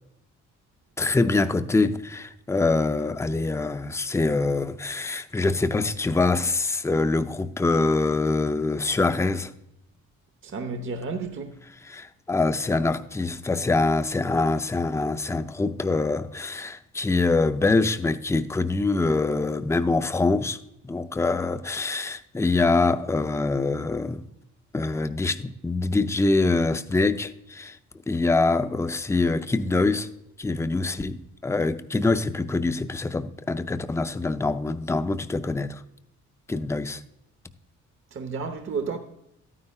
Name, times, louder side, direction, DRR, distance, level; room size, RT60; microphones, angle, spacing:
voice 1, 1.0-9.5 11.8-20.6 20.8-24.2 24.7-27.8 28.1-30.1 30.4-35.8 36.5-37.0, left 3 dB, 10° left, 0.5 m, -24 dB
voice 2, 10.4-11.5 38.1-39.0, right 4 dB, 40° right, 0.9 m, -31 dB
12.5 x 9.6 x 2.3 m
cardioid pair, 90°, 30 cm